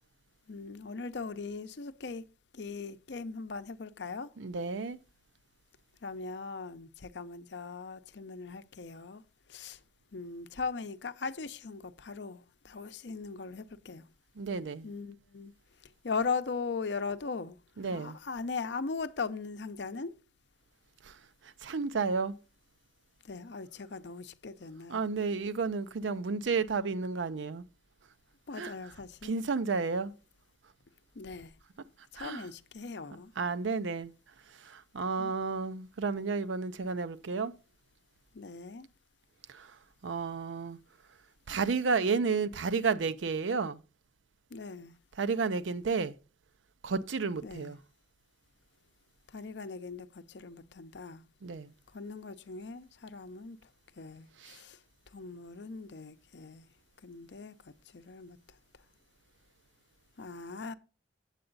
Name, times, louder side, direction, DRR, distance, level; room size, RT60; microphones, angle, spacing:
voice 1, 0.5-2.3 2.5-4.3 6.0-9.2 9.5-9.8 10.1-14.0 14.8-15.5 16.0-17.6 17.9-20.1 23.2-25.0 28.5-29.4 31.2-31.5 32.1-33.3 35.2-35.3 38.3-38.9 44.5-44.9 47.4-47.7 49.3-51.2 51.9-53.6 54.0-54.8 55.1-56.7 57.0-58.4 60.2-60.7, left 4 dB, 70° left, 0.6 m, -39 dB
voice 2, 4.4-5.0 14.4-14.9 17.8-18.2 21.1-21.2 21.6-22.3 24.9-27.6 28.6-28.7 29.2-30.1 32.2-32.4 33.4-34.1 34.6-37.5 39.5-39.7 40.0-40.8 41.5-43.8 45.2-46.2 46.8-47.8 51.4-51.7 54.4-54.6, right 4 dB, 85° right, 0.5 m, -32 dB
8.2 x 7.8 x 3.9 m
head